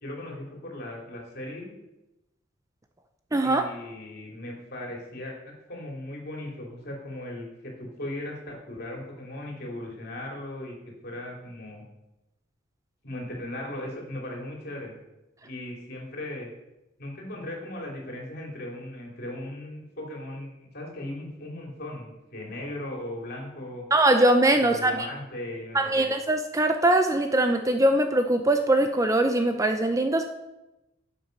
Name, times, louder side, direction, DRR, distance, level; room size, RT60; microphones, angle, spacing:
voice 1, 0.0-1.7 3.4-5.4 5.7-11.8 13.0-14.9 15.4-16.5 17.0-23.9 24.6-26.1, left 1 dB, 50° left, -1 dB, 3.2 m, -38 dB
voice 2, 3.3-3.7 23.9-25.1 25.7-30.3, right 1 dB, 15° right, 6 dB, 0.6 m, -22 dB
11.5 x 8.0 x 5.4 m, 0.97 s
head